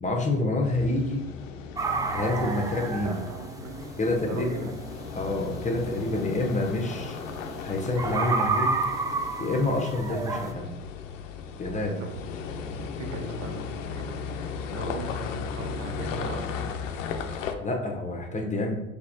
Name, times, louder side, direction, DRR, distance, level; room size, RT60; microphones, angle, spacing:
voice 1, 0.0-1.2 2.1-3.2 4.0-4.7 5.2-7.2 7.6-8.8 9.4-10.7 11.6-12.0 17.3-18.8, left 2 dB, 20° left, 2 dB, 1.0 m, -28 dB
sound 1, 0.6-17.5, left 6 dB, 85° left, 0.6 m, -36 dB
sound 2, 1.8-10.5, right 3 dB, 10° right, 0.3 m, -32 dB
voice 2, 2.2-4.7 12.0-12.2 12.8-16.6, right 3 dB, 80° right, 2 dB, 1.0 m, -39 dB
5.7 x 3.4 x 2.6 m, 0.95 s
hypercardioid pair, 75°, 37 cm